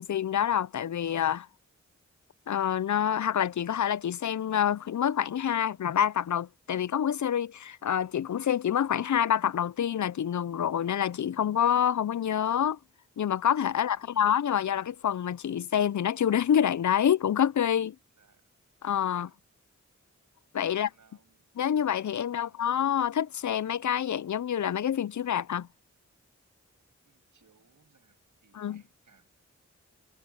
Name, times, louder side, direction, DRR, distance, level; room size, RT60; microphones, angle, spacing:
voice 1, 0.0-1.5 2.5-12.8 13.2-18.0 18.8-19.3 20.5-20.9 21.6-25.7 28.6-28.8, left 9 dB, 75° left, 0.5 m, -27 dB
voice 2, 13.7-14.4 18.2-18.5 19.1-19.4 20.7-21.5 22.2-22.7 27.0-29.3, right 5 dB, 90° right, 7.7 m, -65 dB
wide cardioid pair, 65°, 29 cm